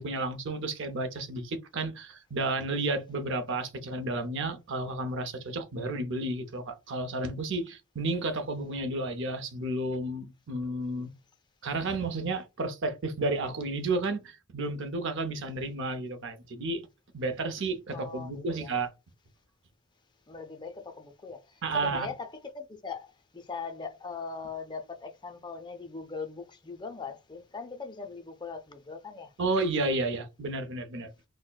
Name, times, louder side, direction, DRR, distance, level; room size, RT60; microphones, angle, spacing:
voice 1, 0.0-11.1 11.6-16.8 17.1-18.9 21.6-22.1 29.4-31.1, right 2 dB, 60° right, 0.6 m, -32 dB
voice 2, 17.9-18.7 20.3-29.3, left 4 dB, 20° left, 0.4 m, -40 dB
4.1 x 2.1 x 2.2 m
head